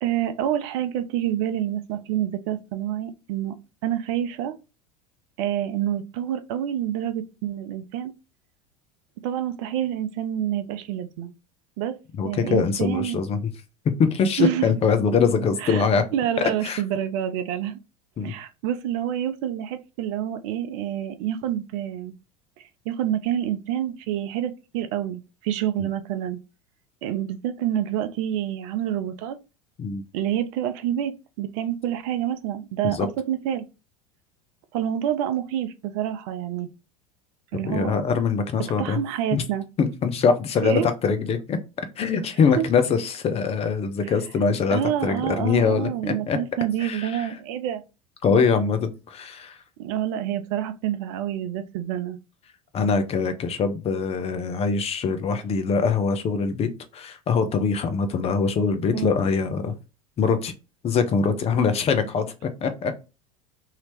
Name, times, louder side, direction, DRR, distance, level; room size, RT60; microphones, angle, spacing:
voice 1, 0.0-3.5 3.8-4.6 5.4-8.1 9.2-11.3 11.8-12.0 12.2-13.2 14.4-14.6 15.6-15.8 16.1-17.8 18.2-22.1 22.6-26.4 27.0-29.4 30.1-33.6 34.7-36.7 37.5-38.0 38.8-39.6 40.6-40.9 42.6-42.7 44.7-47.8 49.8-52.2 58.9-59.1, right 11 dB, 60° right, 0.6 m, -27 dB
voice 2, 12.2-13.5 14.0-16.0 16.4-16.8 18.2-18.3 25.8-25.9 29.8-30.0 32.8-33.1 37.6-39.0 39.3-39.4 39.8-41.6 42.0-46.4 46.8-47.3 48.2-49.6 52.7-59.7 60.2-60.5 60.8-63.0, left 5 dB, 35° left, 0.7 m, -23 dB
2.9 x 2.8 x 3.3 m
hypercardioid pair, 80°, 18 cm